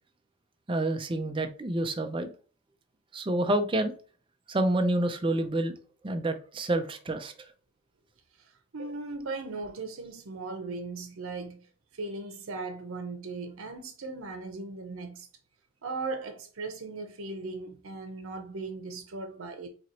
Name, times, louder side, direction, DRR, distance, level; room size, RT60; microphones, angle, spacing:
voice 1, 0.7-2.3 3.1-3.9 4.5-5.7 6.0-7.3, right 1 dB, 25° right, 0.5 m, -28 dB
voice 2, 8.7-11.6 11.9-15.3 15.8-19.7, right 3 dB, 85° right, 0.7 m, -38 dB
4.4 x 2.9 x 2.8 m
head